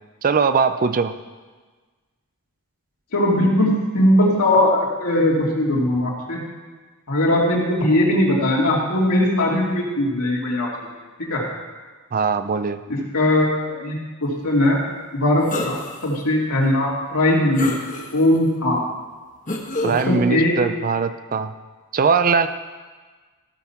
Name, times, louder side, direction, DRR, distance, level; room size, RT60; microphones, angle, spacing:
voice 1, 0.2-1.1 12.1-12.8 19.8-21.5 21.9-22.5, right 5 dB, 40° right, 10 dB, 0.5 m, -20 dB
voice 2, 3.1-6.4 7.1-10.7 11.2-11.4 12.9-14.8 15.1-15.8 16.0-18.8 19.8-20.6, left 1 dB, 75° left, -3 dB, 2.7 m, -20 dB
sound 1, 15.5-16.1 16.6-16.7 17.6-18.4 19.5-20.0, left 2 dB, 35° left, 1.3 m, -28 dB
14.5 x 6.2 x 5.8 m, 1.4 s
head